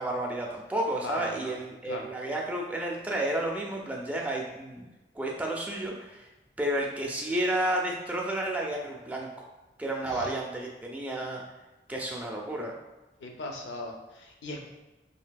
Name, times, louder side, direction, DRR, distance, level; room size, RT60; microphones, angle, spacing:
voice 1, 0.0-4.9 5.1-6.3 6.6-9.3 9.8-11.4 11.9-12.7, right 1 dB, 10° right, -1 dB, 0.4 m, -31 dB
voice 2, 1.0-2.1 10.1-10.3 13.2-14.7, left 2 dB, 85° left, 2 dB, 0.5 m, -39 dB
3.3 x 2.6 x 2.2 m, 1.1 s
head